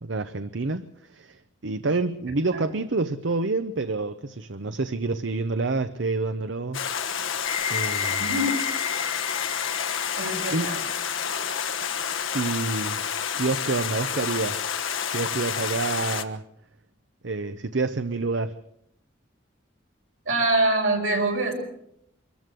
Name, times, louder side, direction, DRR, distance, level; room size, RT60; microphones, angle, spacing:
voice 1, 0.0-6.8 7.7-8.3 10.5-10.7 12.3-13.0 13.3-14.7 15.0-16.4 17.2-18.5, right 3 dB, 70° right, 11 dB, 0.7 m, -28 dB
Stream, 6.7-16.2, left 7 dB, 85° left, 1.2 m, -29 dB
sound 1, 7.4-12.3, left 6 dB, 30° left, 2.5 m, -33 dB
voice 2, 8.2-8.5 10.1-10.8 20.3-21.5, right 2 dB, 90° right, 1 dB, 5.5 m, -24 dB
23.5 x 14.0 x 7.7 m, 0.76 s
head